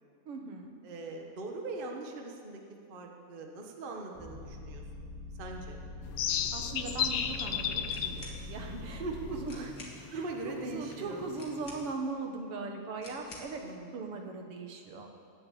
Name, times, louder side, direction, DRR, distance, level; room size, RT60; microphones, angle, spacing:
voice 1, 0.3-0.7 6.5-9.0 9.3-9.7 10.1-13.7 13.9-15.1, right 4 dB, 55° right, 3 dB, 1.9 m, -39 dB
voice 2, 0.8-2.6 2.9-5.1 5.4-5.8 9.0-9.6 10.1-11.2 13.6-14.1, right 3 dB, 75° right, 2 dB, 0.4 m, -41 dB
sound 1, 4.1-9.5, left 1 dB, ahead, 2.6 m, -43 dB
sound 2, 6.0-11.9, left 9 dB, 85° left, 1.2 m, -35 dB
sound 3, 7.8-8.4 9.1-9.2 9.4-10.0 11.3-12.1 13.0-13.6, left 2 dB, 35° left, 2.6 m, -49 dB
20.5 x 7.8 x 8.6 m, 2.3 s
omnidirectional pair, 3.6 m